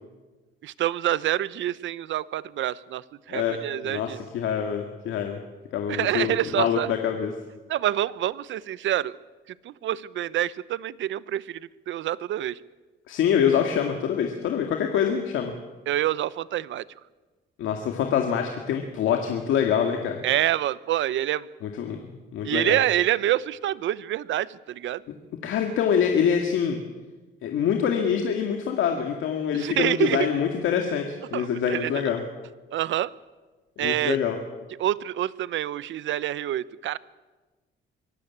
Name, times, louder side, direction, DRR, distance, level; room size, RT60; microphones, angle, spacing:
voice 1, 0.6-4.2 5.9-6.9 7.7-9.1 9.5-12.6 15.9-16.8 20.2-21.5 22.4-25.0 29.5-30.3 31.3-32.0 32.7-33.1 33.8-34.2 34.8-37.0, right 12 dB, 75° right, 19 dB, 0.8 m, -27 dB
voice 2, 3.3-5.4 5.7-7.3 13.1-15.5 17.6-20.2 21.6-22.8 25.4-26.8 27.4-32.2 33.8-34.4, left 8 dB, 85° left, 3 dB, 2.2 m, -25 dB
24.0 x 15.5 x 8.6 m, 1.2 s
cardioid pair, 90°, 20 cm